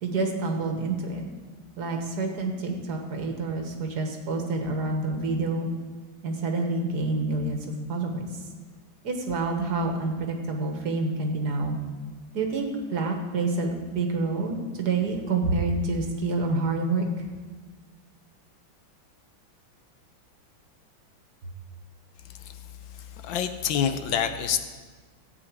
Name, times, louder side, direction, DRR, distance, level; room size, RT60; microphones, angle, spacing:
voice 1, 0.0-1.2 1.8-5.7 6.2-8.3 9.0-11.8 12.3-17.1, right 3 dB, 55° right, 3 dB, 1.7 m, -28 dB
voice 2, 23.2-24.6, left 8 dB, 75° left, 9 dB, 1.4 m, -26 dB
14.5 x 8.6 x 4.6 m, 1.4 s
omnidirectional pair, 2.2 m